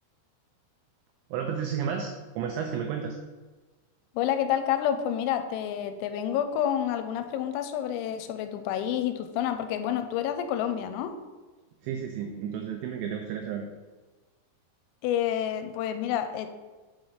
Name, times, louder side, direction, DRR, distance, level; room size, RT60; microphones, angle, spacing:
voice 1, 1.3-3.2 11.8-13.7, right 7 dB, 90° right, 3 dB, 2.6 m, -32 dB
voice 2, 4.1-11.1 15.0-16.5, left 10 dB, 85° left, 8 dB, 3.2 m, -29 dB
7.5 x 4.0 x 4.9 m, 1.3 s
omnidirectional pair, 5.9 m